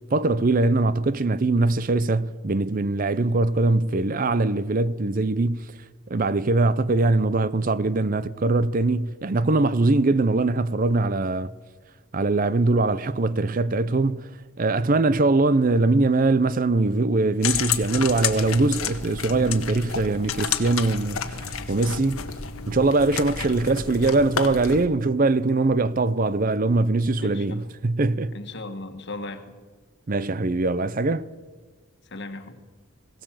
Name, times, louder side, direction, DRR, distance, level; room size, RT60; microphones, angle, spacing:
voice 1, 0.1-5.7 6.1-11.5 12.1-14.2 14.6-22.2 22.7-28.3 30.1-31.2, right 2 dB, 40° right, 0.6 m, -22 dB
sound 1, 17.4-24.9, left 7 dB, 90° left, 1.5 m, -30 dB
voice 2, 27.2-27.6 28.3-29.6 32.0-32.6, left 2 dB, 55° left, 1.6 m, -37 dB
21.0 x 17.5 x 7.5 m
head